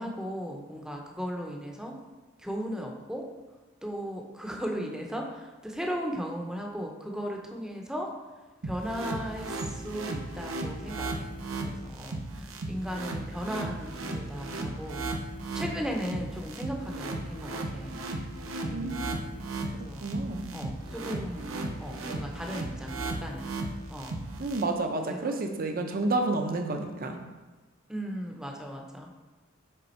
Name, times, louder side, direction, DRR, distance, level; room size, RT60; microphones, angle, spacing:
voice 1, 0.0-2.0 2.4-3.3 3.8-8.1 8.6-11.3 11.6-15.0 15.5-18.0 18.6-18.9 19.7-20.1 20.5-21.5 21.8-23.5 23.9-24.2 25.1-25.4 27.9-29.1, equal, 5° right, 1 dB, 0.7 m, -36 dB
sound 1, 8.6-24.6, right 2 dB, 90° right, 0.7 m, -36 dB
voice 2, 18.7-19.4 20.0-20.5 24.4-27.2, right 2 dB, 45° right, 5 dB, 0.7 m, -30 dB
6.8 x 3.7 x 4.3 m, 1.2 s
head